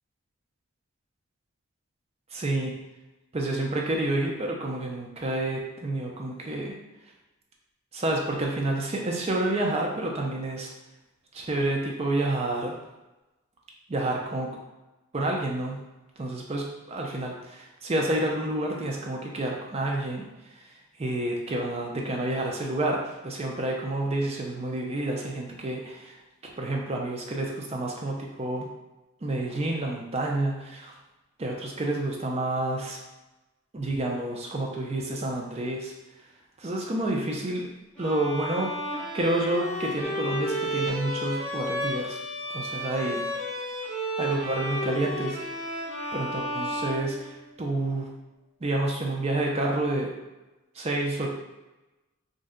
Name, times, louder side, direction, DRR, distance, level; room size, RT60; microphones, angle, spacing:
voice 1, 2.3-2.7 3.3-6.7 7.9-10.7 11.3-12.8 13.9-14.5 15.1-15.8 16.2-20.3 21.0-26.1 26.6-28.6 29.2-30.9 31.4-33.0 33.7-35.9 36.6-37.7 38.0-38.8 39.1-42.2 42.5-43.2 44.2-45.4 46.1-48.1 48.6-50.1 50.8-51.3, right 2 dB, 30° right, 0 dB, 0.4 m, -29 dB
Bowed string instrument, 38.0-47.7, equal, 5° left, 0.7 m, -32 dB
2.6 x 2.1 x 3.6 m, 1.0 s
head